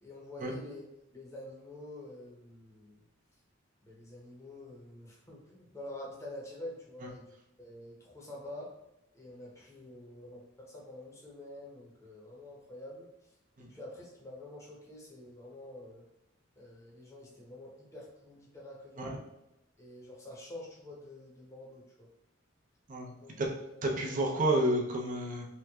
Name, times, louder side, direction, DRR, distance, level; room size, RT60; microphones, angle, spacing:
voice 1, 0.0-0.8 1.1-3.0 3.8-7.3 7.6-8.7 9.1-13.1 13.6-16.1 16.6-19.2 19.8-22.1 23.2-24.2, left 1 dB, 15° left, -4 dB, 0.8 m, -47 dB
voice 2, 22.9-23.5 23.8-25.5, right 1 dB, 45° right, -1 dB, 0.6 m, -30 dB
3.3 x 3.0 x 2.3 m, 0.90 s
head